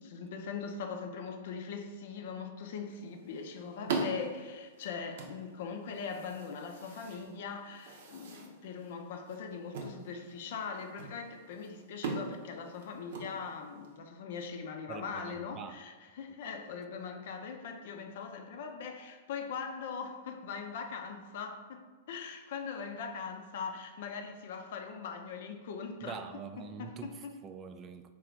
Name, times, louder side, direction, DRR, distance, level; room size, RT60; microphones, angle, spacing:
voice 1, 0.0-26.2 26.8-27.3, left 5 dB, 60° left, 5 dB, 0.5 m, -41 dB
sound 1, 2.9-13.9, right 3 dB, 60° right, 0.7 m, -42 dB
voice 2, 14.9-15.8 26.0-28.1, right 6 dB, 30° right, 8 dB, 0.3 m, -45 dB
3.8 x 2.4 x 4.6 m, 1.4 s
figure-of-eight pair, 100°, 0 cm